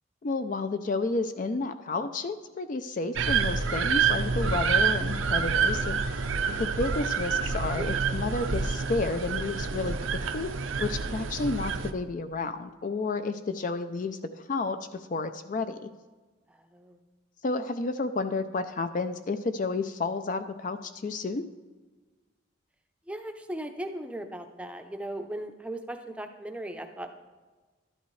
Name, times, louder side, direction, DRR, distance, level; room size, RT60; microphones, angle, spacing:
voice 1, 0.2-6.0 6.5-10.5 10.8-15.9 17.4-21.5, left 3 dB, 40° left, 10 dB, 0.4 m, -31 dB
sound 1, 3.2-11.9, right 5 dB, 85° right, 0.6 m, -28 dB
voice 2, 16.5-17.0 23.1-27.1, right 1 dB, 5° right, 5 dB, 0.6 m, -38 dB
12.0 x 11.0 x 3.2 m, 1.3 s
head